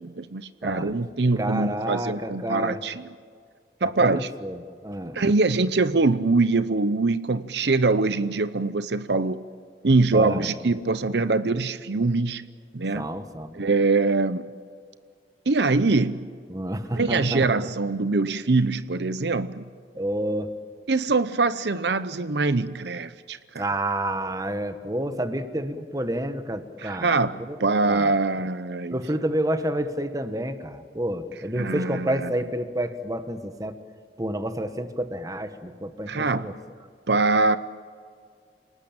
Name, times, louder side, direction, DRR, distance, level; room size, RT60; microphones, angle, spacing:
voice 1, 0.0-3.0 3.8-4.3 5.1-9.4 9.8-12.4 12.7-13.0 13.5-14.4 15.5-16.3 16.9-19.6 20.9-23.6 26.8-29.0 31.6-32.3 36.1-36.5 37.1-37.6, right 3 dB, 70° right, 14 dB, 0.7 m, -23 dB
voice 2, 1.4-2.8 3.8-5.2 10.1-10.5 12.9-13.6 16.5-17.7 19.9-20.5 23.6-27.6 27.9-28.1 28.9-33.7 34.2-36.5, right 1 dB, 20° right, 9 dB, 1.4 m, -29 dB
28.5 x 19.5 x 8.9 m, 2.1 s
head